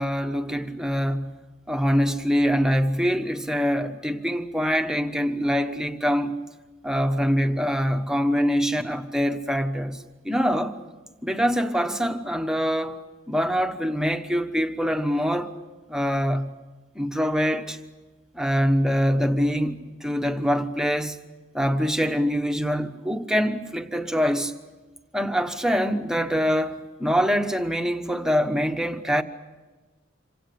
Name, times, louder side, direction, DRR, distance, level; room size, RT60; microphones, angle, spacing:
voice 1, 0.0-1.4 1.7-6.4 6.8-10.8 11.2-15.5 15.9-16.6 16.9-17.8 18.3-21.2 21.5-24.5 25.1-29.2, equal, 5° right, 1.1 m, -24 dB
27.0 x 25.0 x 6.7 m
head